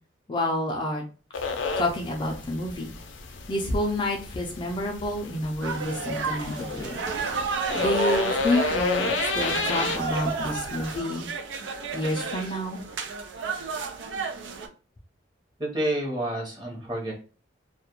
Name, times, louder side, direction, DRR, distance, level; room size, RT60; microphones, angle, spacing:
voice 1, 0.3-1.0 1.8-2.9 3.5-7.0 7.7-11.3 11.9-12.8, left 1 dB, 25° left, 0 dB, 0.4 m, -28 dB
sound 1, 1.3-11.0, left 4 dB, 85° left, 0.4 m, -32 dB
sound 2, 5.6-14.7, right 4 dB, 80° right, 0.4 m, -32 dB
voice 2, 15.6-17.1, right 1 dB, 25° right, -1 dB, 0.9 m, -29 dB
2.3 x 2.1 x 2.9 m, 0.36 s
head